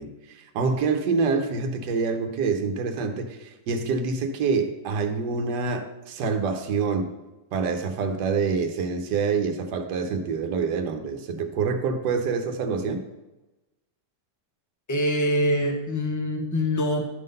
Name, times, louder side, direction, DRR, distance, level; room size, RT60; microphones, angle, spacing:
voice 1, 0.0-7.1 7.5-13.0, right 4 dB, 75° right, 5 dB, 1.4 m, -26 dB
voice 2, 14.9-17.0, equal, 15° left, 3 dB, 0.7 m, -24 dB
11.0 x 3.8 x 5.3 m, 1.0 s
omnidirectional pair, 1.8 m